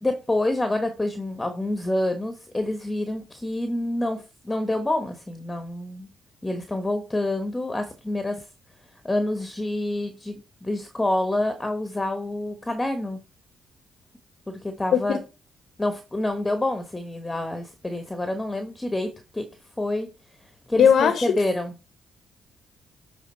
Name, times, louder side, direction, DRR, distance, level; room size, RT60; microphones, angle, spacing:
voice 1, 0.0-6.1 6.4-8.4 9.0-13.2 14.5-15.2 15.8-19.5 19.8-20.1 20.7-21.7, left 1 dB, 15° left, 1.1 m, -27 dB
voice 2, 20.8-21.4, left 7 dB, 65° left, 0.8 m, -18 dB
9.2 x 3.5 x 4.4 m
cardioid pair, 90°, 0 cm